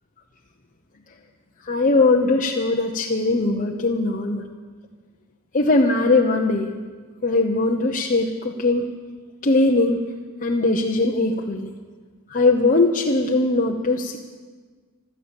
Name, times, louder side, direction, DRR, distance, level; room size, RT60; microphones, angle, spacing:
voice 1, 1.6-4.4 5.5-6.7 7.2-8.9 9.4-10.0 10.4-11.7 12.3-14.2, left 2 dB, 40° left, 1 dB, 0.8 m, -20 dB
16.0 x 13.0 x 7.1 m, 1.5 s
head